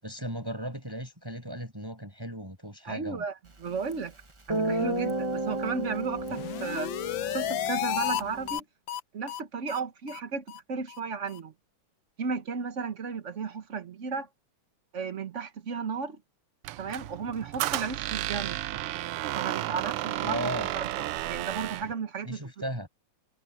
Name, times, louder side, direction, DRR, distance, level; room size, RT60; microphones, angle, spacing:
voice 1, 0.0-3.2 20.2-20.7 22.2-22.9, right 1 dB, 10° right, 7.8 m, -36 dB
voice 2, 2.8-3.3 3.6-4.1 4.5-6.9 7.3-8.6 9.1-11.5 12.2-14.3 14.9-16.2 16.8-18.6 19.3-22.5, right 5 dB, 40° right, 1.2 m, -34 dB
Guitar, 3.9-4.0 4.5-8.6, right 1 dB, 25° right, 0.6 m, -33 dB
sound 1, 6.2-8.2 8.5-8.6 8.9-9.0 9.3-9.4 9.7-9.8 10.1-10.2 10.5-10.6 10.9-11.0 11.3-11.4, left 12 dB, 70° left, 1.4 m, -32 dB
Squeak, 16.6-21.9, right 15 dB, 90° right, 1.6 m, -32 dB
omnidirectional pair, 2.4 m